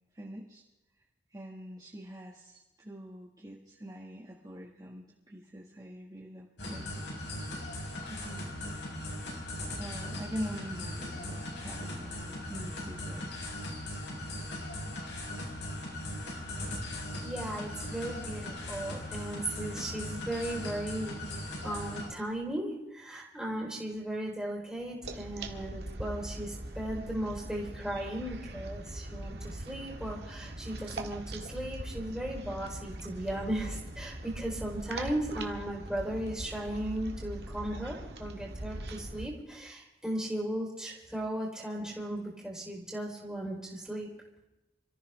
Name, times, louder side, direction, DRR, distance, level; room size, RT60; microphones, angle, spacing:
voice 1, 0.1-0.6 1.3-7.3 7.6-8.8 9.8-13.4 14.3-14.4, equal, 20° right, -4 dB, 1.8 m, -44 dB
sound 1, 6.6-22.1, left 1 dB, 80° left, 4.8 m, -39 dB
voice 2, 17.2-44.1, right 1 dB, 5° right, -5 dB, 3.9 m, -36 dB
sound 2, 25.0-39.3, right 1 dB, 70° right, 1.7 m, -41 dB
27.5 x 14.0 x 3.4 m, 1.0 s
head